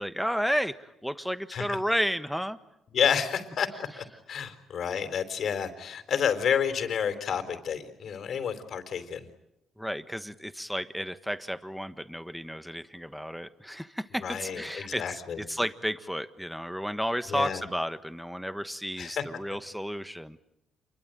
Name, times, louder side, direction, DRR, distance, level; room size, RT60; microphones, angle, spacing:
voice 1, 0.0-2.6 9.8-20.4, equal, ahead, 11 dB, 1.4 m, -32 dB
voice 2, 2.9-9.3 14.2-15.4 17.3-17.6 19.0-19.2, left 7 dB, 60° left, 9 dB, 4.0 m, -30 dB
28.5 x 22.5 x 9.1 m, 0.86 s
cardioid pair, 90°, 0 cm